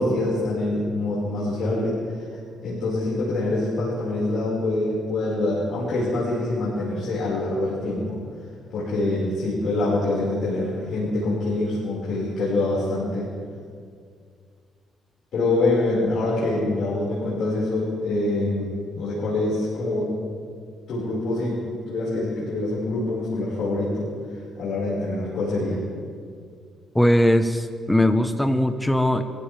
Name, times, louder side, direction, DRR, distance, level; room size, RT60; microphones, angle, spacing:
voice 1, 0.0-1.9 2.6-8.2 8.7-13.3 15.3-20.1 20.9-25.8, left 2 dB, 70° left, -7 dB, 5.2 m, -25 dB
voice 2, 26.9-29.2, left 1 dB, 5° left, 8 dB, 1.0 m, -20 dB
27.0 x 15.0 x 3.5 m, 2.2 s
cardioid pair, 90°, 0 cm